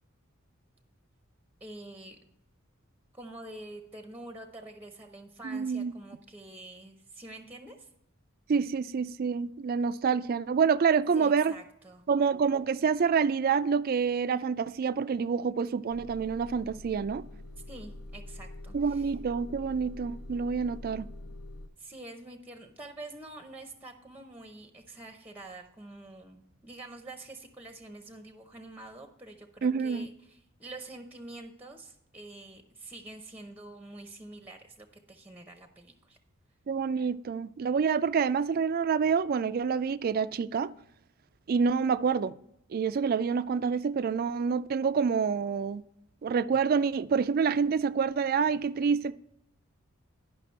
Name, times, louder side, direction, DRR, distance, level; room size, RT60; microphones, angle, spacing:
voice 1, 1.6-2.2 3.1-7.9 11.1-12.0 17.7-19.1 21.8-36.2, right 2 dB, 10° right, 0.7 m, -46 dB
voice 2, 5.4-5.9 8.5-11.5 12.1-17.2 18.7-21.1 29.6-30.1 36.7-40.7 41.5-42.3 42.7-45.8 46.2-49.1, right 6 dB, 45° right, 0.3 m, -27 dB
Motor vehicle (road) / Engine starting / Idling, 15.9-21.7, left 1 dB, 65° left, 0.8 m, -45 dB
11.0 x 5.8 x 4.4 m
head